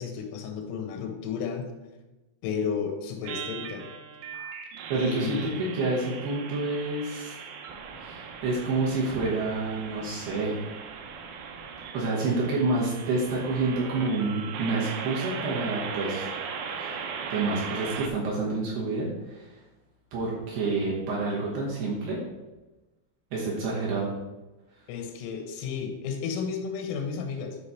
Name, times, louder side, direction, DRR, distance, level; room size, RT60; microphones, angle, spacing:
voice 1, 0.0-1.7 2.4-3.8 4.9-5.6 24.9-27.6, left 6 dB, 90° left, 4 dB, 3.4 m, -32 dB
sound 1, 3.2-18.1, right 6 dB, 85° right, 3.5 m, -38 dB
voice 2, 4.9-7.4 8.0-10.5 11.9-16.3 16.8-17.0 17.3-19.5 20.1-22.2 23.3-24.1, right 3 dB, 70° right, -4 dB, 2.7 m, -28 dB
9.6 x 3.2 x 5.6 m, 1.1 s
omnidirectional pair, 5.9 m